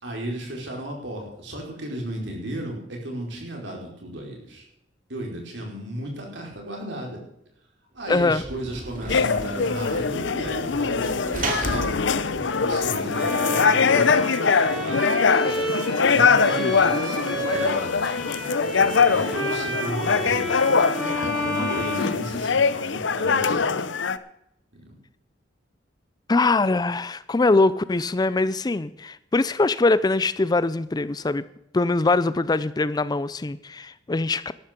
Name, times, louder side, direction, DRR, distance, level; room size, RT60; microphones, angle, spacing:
voice 1, 0.0-4.7 5.1-7.2 7.9-11.9 12.3-23.9 24.7-24.9, right 1 dB, 70° right, 0 dB, 4.7 m, -35 dB
voice 2, 8.1-8.4 26.3-31.4 31.7-34.5, left 3 dB, 20° left, 16 dB, 0.4 m, -22 dB
Sliding door / Slam, 8.1-13.5, right 2 dB, 45° right, 2.5 m, -34 dB
sound 1, 9.1-24.2, left 5 dB, 70° left, 0.7 m, -22 dB
Bowed string instrument, 13.1-22.9, equal, ahead, 5.1 m, -31 dB
13.5 x 12.5 x 5.2 m, 0.79 s
head